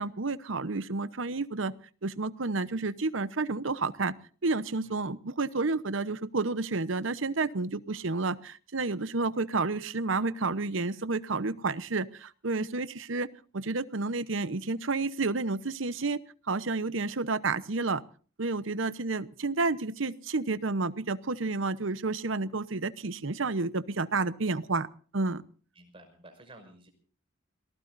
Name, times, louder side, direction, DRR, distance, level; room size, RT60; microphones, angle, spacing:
voice 1, 0.0-1.7 2.0-4.1 4.4-13.3 13.5-16.2 16.5-18.0 18.4-24.9 25.1-25.4, right 3 dB, 70° right, 15 dB, 0.9 m, -30 dB
voice 2, 25.7-26.9, right 1 dB, 25° right, 4 dB, 5.9 m, -53 dB
29.5 x 19.0 x 2.6 m, 0.41 s
head